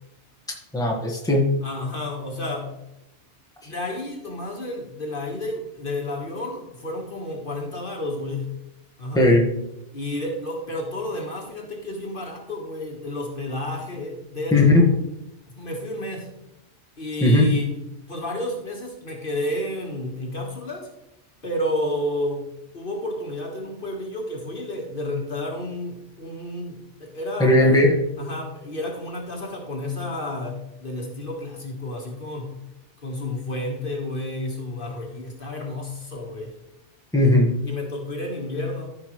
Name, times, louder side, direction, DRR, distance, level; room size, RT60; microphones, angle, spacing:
voice 1, 0.7-1.5 9.1-9.4 14.5-14.8 17.2-17.5 27.4-28.0 37.1-37.5, left 1 dB, 5° left, -2 dB, 1.5 m, -17 dB
voice 2, 1.6-2.8 3.6-8.5 9.0-9.4 9.9-14.9 15.5-16.3 17.0-17.8 18.1-20.9 21.4-22.5 22.7-27.9 28.2-32.6 33.0-36.5 37.6-38.9, left 1 dB, 50° left, 0 dB, 1.8 m, -31 dB
14.0 x 5.7 x 3.2 m, 0.85 s
omnidirectional pair, 1.2 m